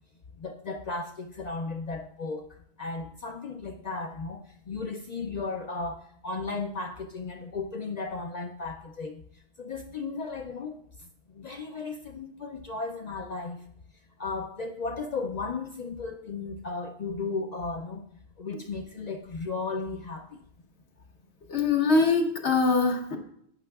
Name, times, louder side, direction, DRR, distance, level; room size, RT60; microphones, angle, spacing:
voice 1, 0.4-2.5 2.8-9.2 9.6-10.8 11.0-13.6 14.2-18.0 18.4-20.4, left 4 dB, 55° left, 4 dB, 0.5 m, -35 dB
voice 2, 21.5-23.2, left 4 dB, 80° left, 2 dB, 1.4 m, -23 dB
11.5 x 8.5 x 2.3 m, 0.70 s
omnidirectional pair, 1.1 m